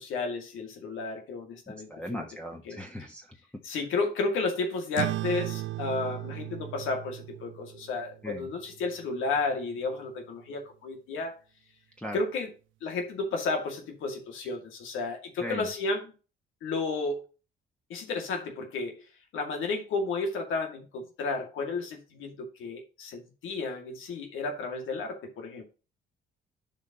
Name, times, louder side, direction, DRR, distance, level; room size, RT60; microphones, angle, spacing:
voice 1, 0.0-2.2 2.6-2.8 3.6-11.3 12.1-12.5 12.8-16.1 16.6-17.2 17.9-19.0 19.3-25.6, left 3 dB, 85° left, 2.2 m, -32 dB
voice 2, 1.9-3.2 8.2-8.5 12.0-12.2 15.4-15.6, equal, 5° left, 1.3 m, -38 dB
sound 1, 5.0-9.8, right 16 dB, 75° right, 0.5 m, -37 dB
10.5 x 5.3 x 2.9 m
cardioid pair, 90°, 20 cm